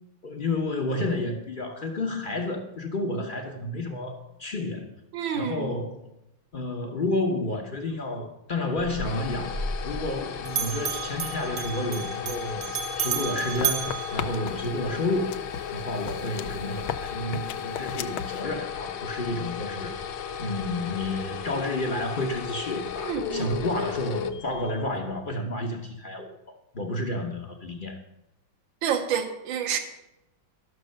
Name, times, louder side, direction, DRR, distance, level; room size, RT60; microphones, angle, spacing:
voice 1, 0.2-4.9 5.3-6.0 6.5-9.5 9.8-15.3 15.7-19.9 20.4-28.0, left 2 dB, 50° left, 3 dB, 0.6 m, -30 dB
voice 2, 5.1-5.7 23.1-23.6 28.8-29.8, right 8 dB, 75° right, 7 dB, 1.7 m, -28 dB
sound 1, 8.8-25.0, left 8 dB, 70° left, 1.4 m, -35 dB
Bell, 8.8-10.2 10.5-14.9, right 7 dB, 50° right, 1.1 m, -32 dB
sound 2, 13.4-14.8 15.3-18.4, left 9 dB, 90° left, 1.4 m, -36 dB
12.0 x 6.3 x 6.4 m, 0.91 s
omnidirectional pair, 2.2 m